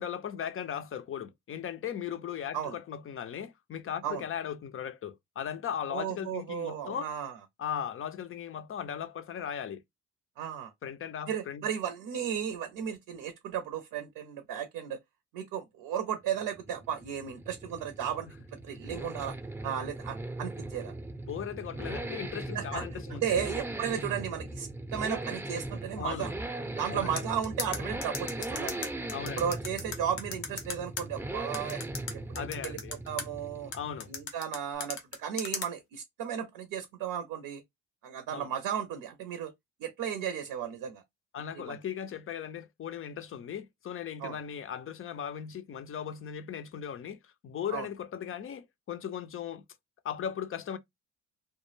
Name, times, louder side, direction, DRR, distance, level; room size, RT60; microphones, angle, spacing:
voice 1, 0.0-7.1 7.6-9.8 10.8-11.7 21.3-23.2 26.0-26.3 26.9-27.3 29.1-29.5 32.3-32.9 33.7-34.1 38.3-38.5 41.3-49.6 50.0-50.8, left 8 dB, 35° left, 0.5 m, -37 dB
voice 2, 5.9-7.4 10.4-10.7 11.3-15.0 15.3-18.3 18.6-19.4 19.6-20.9 22.5-22.8 23.1-26.3 26.8-28.9 29.4-31.8 32.1-32.8 33.1-33.7 34.1-37.6 38.0-39.5 39.8-41.0 41.5-41.8 44.2-44.4 47.7-47.9, right 8 dB, 70° right, 0.7 m, -34 dB
sound 1, 16.2-34.3, right 2 dB, 5° right, 0.6 m, -39 dB
sound 2, 27.2-31.0 31.5-33.2 33.7-35.7, left 6 dB, 90° left, 0.7 m, -36 dB
2.1 x 2.1 x 3.1 m
hypercardioid pair, 55°, 37 cm